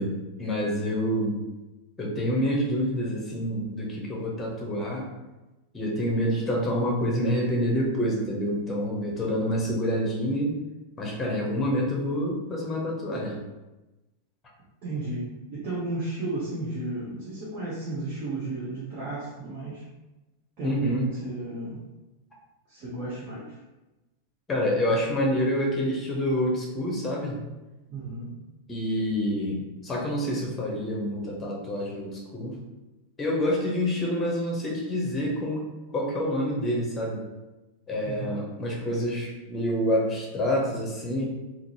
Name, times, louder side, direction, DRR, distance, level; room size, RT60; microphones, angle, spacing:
voice 1, 0.0-1.4 2.0-5.1 5.7-10.6 11.0-13.4 20.6-21.1 24.5-27.4 28.7-32.6 33.2-37.2 37.9-41.2, equal, 15° left, -2 dB, 0.8 m, -27 dB
voice 2, 14.8-19.8 20.6-21.8 22.7-23.6 27.9-28.3 38.0-38.4, right 2 dB, 40° right, -8 dB, 0.9 m, -33 dB
3.7 x 2.0 x 2.8 m, 1.1 s
figure-of-eight pair, 90°, 0 cm